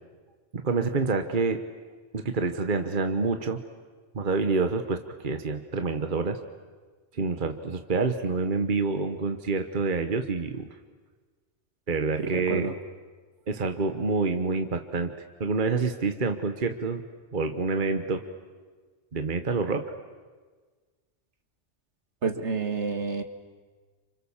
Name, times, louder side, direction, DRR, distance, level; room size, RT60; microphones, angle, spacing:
voice 1, 0.5-1.6 2.1-3.6 4.1-6.4 7.1-10.7 11.9-12.7 13.5-15.1 15.4-17.0 17.3-18.2 19.1-19.9, right 4 dB, 45° right, 7 dB, 1.4 m, -27 dB
voice 2, 12.2-12.7 22.2-23.2, right 4 dB, 70° right, 7 dB, 2.2 m, -29 dB
29.5 x 27.0 x 7.3 m, 1.4 s
omnidirectional pair, 1.2 m